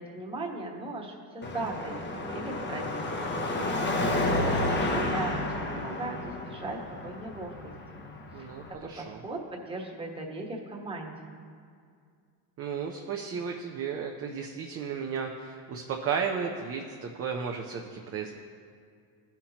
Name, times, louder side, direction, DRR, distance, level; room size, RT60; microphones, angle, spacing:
voice 1, 0.0-2.0 2.3-3.4 4.0-7.5 7.9-8.0 8.4-8.5 8.8-11.3, right 2 dB, 15° right, -1 dB, 1.2 m, -38 dB
Car passing by / Traffic noise roadway noise / Engine, 1.4-8.7, left 2 dB, 25° left, 0.8 m, -31 dB
voice 2, 4.0-4.4 8.3-9.2 12.6-18.3, right 6 dB, 35° right, 1 dB, 0.6 m, -34 dB
16.0 x 5.8 x 2.9 m, 2.2 s
cardioid pair, 135°, 43 cm